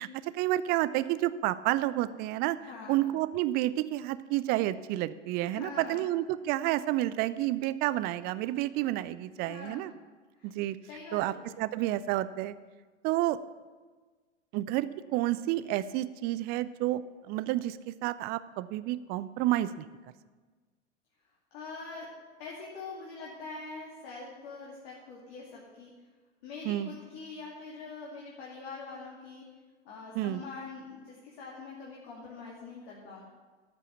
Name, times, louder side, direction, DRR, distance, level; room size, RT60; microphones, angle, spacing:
voice 1, 0.0-2.6 2.9-9.9 10.4-10.8 11.1-12.6 13.0-13.4 14.5-17.0 17.3-19.9 26.6-26.9 30.1-30.4, right 15 dB, 30° right, 15 dB, 0.4 m, -30 dB
voice 2, 2.6-3.1 5.4-6.1 9.4-10.0 10.4-10.5 10.9-11.6 21.5-22.1 22.4-25.9 26.4-29.4 29.8-33.2, left 4 dB, 50° left, -4 dB, 2.5 m, -44 dB
13.5 x 5.5 x 7.1 m, 1.4 s
figure-of-eight pair, 90°, 36 cm